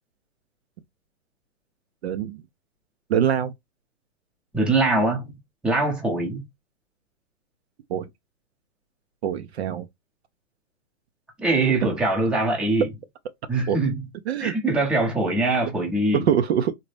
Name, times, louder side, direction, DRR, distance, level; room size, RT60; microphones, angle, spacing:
voice 1, 2.0-2.4 3.1-3.5 7.9-8.1 9.2-9.9 13.7-13.8 14.3-14.5 16.1-16.7, right 9 dB, 50° right, 0.4 m, -23 dB
voice 2, 4.5-5.4 5.6-6.4 11.4-12.9 13.5-14.0 14.4-16.2, right 2 dB, ahead, 0.7 m, -22 dB
3.9 x 2.1 x 3.2 m
hypercardioid pair, 140°, 42 cm